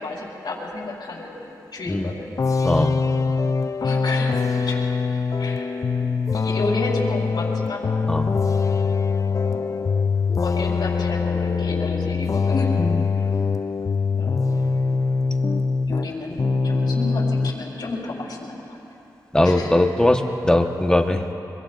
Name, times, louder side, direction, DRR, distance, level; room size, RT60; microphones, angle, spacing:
voice 1, 0.0-1.4 1.7-2.3 3.8-4.8 5.4-5.7 6.3-7.9 9.3-9.8 10.4-12.7 13.2-13.3 14.2-14.6 15.9-18.8 19.4-19.7, left 2 dB, 75° left, -3 dB, 4.1 m, -31 dB
sound 1, 2.4-16.1 16.4-17.6, left 4 dB, 50° left, 0.5 m, -23 dB
voice 2, 2.6-3.0 8.1-8.3 12.8-13.0 19.3-21.3, left 1 dB, 10° left, 3 dB, 1.3 m, -20 dB
25.0 x 22.5 x 2.6 m, 2.9 s
cardioid pair, 70°, 8 cm